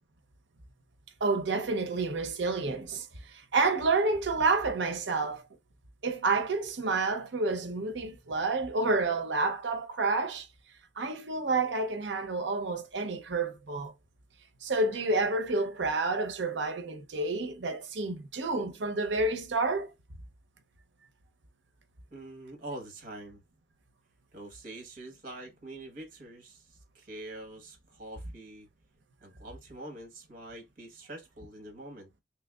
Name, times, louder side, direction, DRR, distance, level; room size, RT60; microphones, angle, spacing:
voice 1, 1.2-3.1 3.3-5.4 6.0-10.5 11.0-13.9 14.6-19.9, right 3 dB, 70° right, 0.7 m, -29 dB
voice 2, 22.1-23.4 24.3-28.7 29.2-32.1, right 1 dB, 50° right, 1.2 m, -45 dB
3.3 x 3.2 x 2.3 m
head